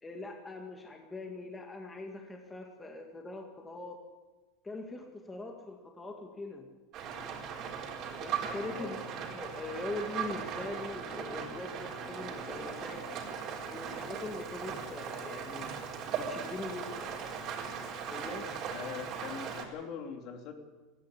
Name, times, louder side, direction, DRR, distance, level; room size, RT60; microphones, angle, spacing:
voice 1, 0.0-4.0 4.6-6.7 8.2-9.0 9.3-13.0 13.7-15.7 16.2-17.1 18.1-18.5, left 2 dB, 10° left, 3 dB, 1.9 m, -42 dB
Rain, 6.9-19.6, right 7 dB, 40° right, 4.1 m, -39 dB
voice 2, 8.7-9.0 18.7-20.5, left 7 dB, 50° left, 4 dB, 3.1 m, -42 dB
18.0 x 15.5 x 9.7 m, 1.2 s
supercardioid pair, 145°, 0 cm